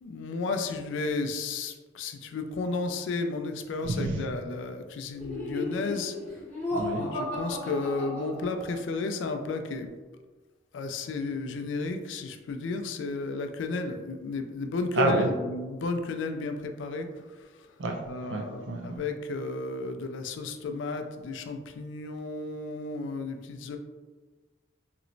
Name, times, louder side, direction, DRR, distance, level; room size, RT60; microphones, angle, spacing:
voice 1, 0.0-6.2 7.1-9.9 10.7-17.1 18.1-23.8, left 3 dB, 80° left, 6 dB, 0.3 m, -33 dB
Laughter, 5.2-8.9, left 1 dB, 10° left, 1.0 m, -35 dB
voice 2, 6.7-7.1 15.0-15.3 17.8-18.0 18.3-19.0, right 2 dB, 75° right, 3 dB, 0.5 m, -28 dB
3.0 x 3.0 x 2.5 m, 1.3 s
head